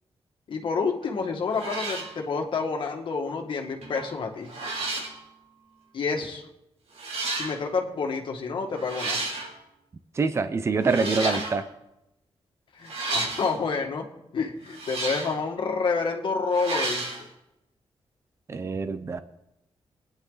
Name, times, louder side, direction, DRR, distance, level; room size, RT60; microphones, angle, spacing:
voice 1, 0.5-4.5 5.9-6.5 7.3-9.2 11.0-11.4 12.7-14.1 14.3-17.3, left 4 dB, 55° left, 2 dB, 2.0 m, -29 dB
sound 1, 1.0-1.2 1.5-2.1 3.8-4.1 4.5-5.2 6.1-6.2 7.0-7.5 8.7-9.5 10.8-11.6 12.8-13.5 14.7-15.4 16.5-17.2, right 3 dB, 85° right, 3.3 m, -32 dB
voice 2, 10.1-11.6 18.5-19.2, right 4 dB, 25° right, 11 dB, 0.6 m, -25 dB
24.0 x 9.9 x 4.1 m, 0.89 s
wide cardioid pair, 180°, 10 cm